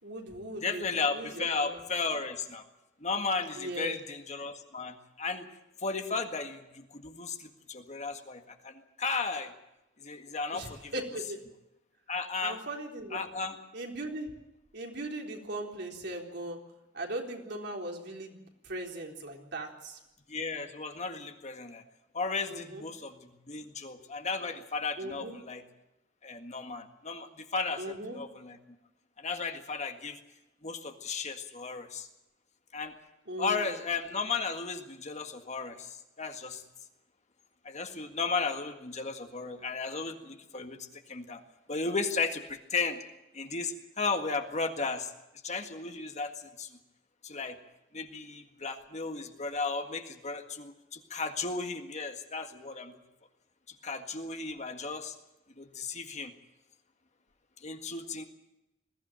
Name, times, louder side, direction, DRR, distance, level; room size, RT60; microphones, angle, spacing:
voice 1, 0.0-0.8 1.1-1.8 3.5-4.0 10.5-11.4 12.4-13.3 13.7-14.3 14.7-16.6 16.9-20.0 22.5-22.8 25.0-25.4 27.8-28.2 33.3-33.7, right 1 dB, 65° right, 1 dB, 3.9 m, -39 dB
voice 2, 0.6-2.7 3.0-5.5 5.8-9.5 10.0-10.9 12.1-12.6 13.1-13.6 20.3-21.8 22.1-25.6 26.2-28.6 29.2-30.2 30.6-32.1 32.7-32.9 33.4-36.6 37.6-41.4 41.7-43.0 43.3-45.1 45.4-46.8 47.2-47.6 47.9-53.0 53.7-55.2 55.6-56.3 57.6-58.2, left 4 dB, 40° left, 6 dB, 1.8 m, -35 dB
21.5 x 15.5 x 8.9 m, 0.91 s
head